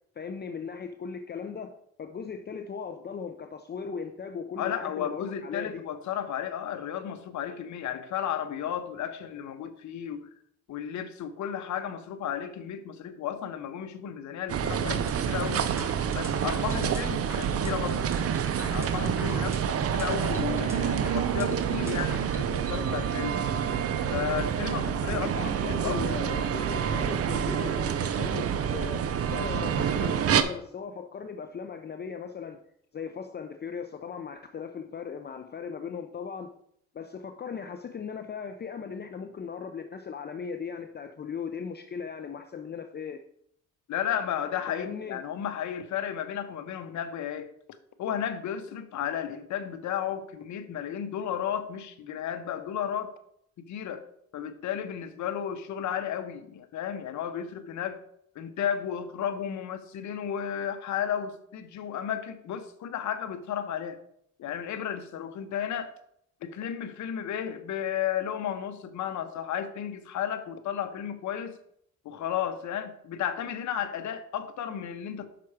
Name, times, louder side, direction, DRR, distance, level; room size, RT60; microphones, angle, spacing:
voice 1, 0.2-5.8 25.1-29.0 29.3-32.6 32.9-36.5 36.9-43.2 44.7-45.2, left 6 dB, 35° left, 7 dB, 0.6 m, -38 dB
voice 2, 4.6-10.3 10.7-15.7 16.1-18.1 18.6-23.4 24.1-26.1 43.9-47.5 48.0-53.1 53.6-54.1 54.3-58.0 58.3-64.0 64.4-65.9 66.4-71.6 72.0-75.3, left 9 dB, 70° left, 10 dB, 0.9 m, -33 dB
sound 1, 14.5-30.4, right 8 dB, 50° right, 0.6 m, -28 dB
sound 2, 15.1-22.5, equal, 10° right, 1.3 m, -44 dB
5.9 x 5.9 x 4.8 m, 0.71 s
cardioid pair, 90°, 30 cm